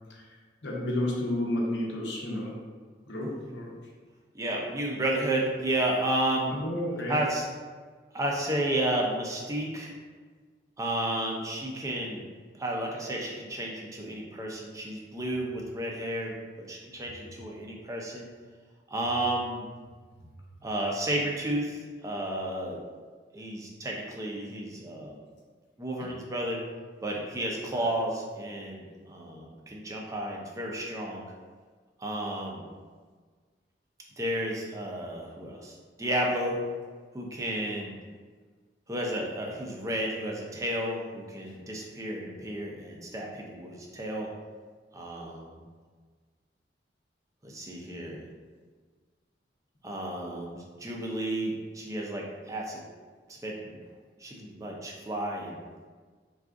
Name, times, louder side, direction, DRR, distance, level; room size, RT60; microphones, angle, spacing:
voice 1, 0.6-2.6 3.1-3.7 6.5-7.2 26.0-26.1, left 1 dB, 80° left, -2 dB, 0.7 m, -31 dB
voice 2, 4.3-6.6 7.1-7.5 8.1-9.9 10.8-12.2 12.6-18.3 18.9-19.6 20.6-22.8 23.3-25.2 25.8-26.6 27.0-31.2 32.0-32.7 34.2-36.6 37.1-38.0 38.9-44.3 44.9-45.6 47.4-48.2 49.8-52.8 53.3-53.8 54.2-55.7, right 1 dB, 20° right, -2 dB, 0.4 m, -32 dB
3.6 x 2.3 x 2.4 m, 1.5 s
head